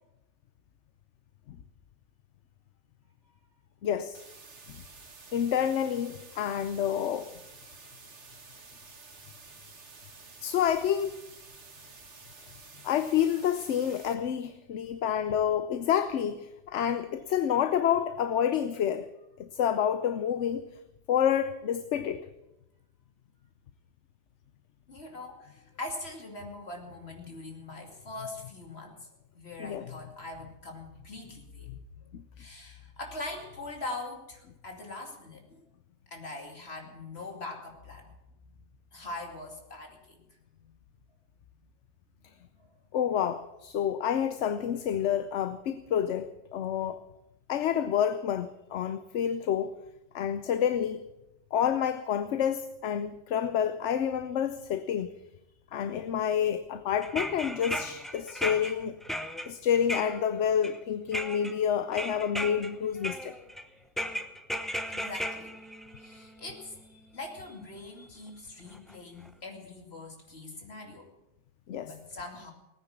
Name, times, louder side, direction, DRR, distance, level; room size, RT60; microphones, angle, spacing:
voice 1, 3.8-4.2 5.3-7.3 10.4-11.2 12.8-19.1 19.4-20.6 21.1-22.2 29.6-29.9 31.7-31.8 32.1-32.2 42.9-47.0 47.5-49.7 50.1-51.0 51.5-55.1 55.7-59.0 59.5-63.3 71.7-71.9, left 9 dB, 75° left, 11 dB, 1.0 m, -28 dB
sound 1, 4.1-14.1, right 4 dB, 70° right, 1.9 m, -51 dB
voice 2, 24.9-29.1 29.3-31.8 32.0-35.6 36.1-38.1 38.4-40.2 40.5-40.7 42.6-42.7 64.9-65.5 66.0-71.0 71.8-72.5, left 2 dB, 60° left, 2 dB, 2.8 m, -42 dB
sound 2, 57.0-60.8 61.1-61.5 61.9-62.7 63.0-63.6 64.0-66.6 67.6-67.7 68.8-68.9 69.2-69.3, equal, ahead, 0.7 m, -36 dB
18.0 x 9.7 x 7.2 m, 0.93 s
omnidirectional pair, 1.2 m